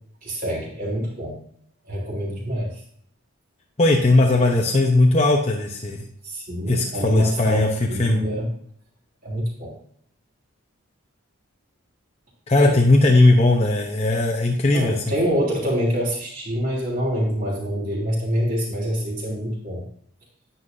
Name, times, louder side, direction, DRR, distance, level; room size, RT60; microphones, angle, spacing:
voice 1, 0.2-1.3 1.9-2.7 6.2-8.5 9.2-9.7 12.6-12.7 14.7-19.8, equal, 40° right, -3 dB, 3.3 m, -25 dB
voice 2, 3.8-6.0 6.7-8.2 12.5-15.0, left 2 dB, 30° left, -1 dB, 0.8 m, -18 dB
9.7 x 9.5 x 2.7 m, 0.64 s
head